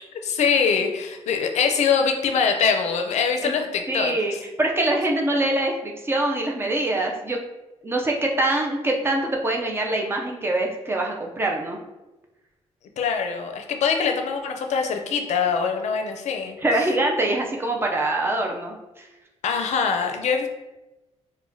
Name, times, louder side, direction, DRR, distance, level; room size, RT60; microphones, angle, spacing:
voice 1, 0.0-4.4 13.0-16.6 19.4-20.5, left 6 dB, 75° left, 5 dB, 0.4 m, -23 dB
voice 2, 3.9-7.4 7.8-11.8 16.6-19.1, right 1 dB, 20° right, 1 dB, 0.4 m, -24 dB
4.8 x 2.1 x 2.6 m, 1.0 s
wide cardioid pair, 175°, 12 cm